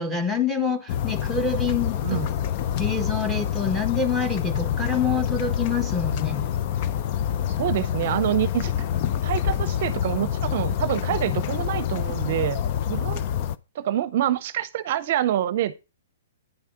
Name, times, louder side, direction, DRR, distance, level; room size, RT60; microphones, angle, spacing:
voice 1, 0.0-2.3 2.8-6.5, left 5 dB, ahead, 1.3 m, -26 dB
sound 1, 0.9-13.6, left 10 dB, 40° left, 0.6 m, -27 dB
sound 2, 4.5-5.3 5.6-9.6 10.2-10.3 10.8-11.7, left 3 dB, 65° left, 4.6 m, -51 dB
voice 2, 7.6-8.7 9.2-12.6 12.9-13.2 13.7-15.8, right 12 dB, 50° right, 0.7 m, -26 dB
10.0 x 4.8 x 5.8 m
hypercardioid pair, 145°, 0 cm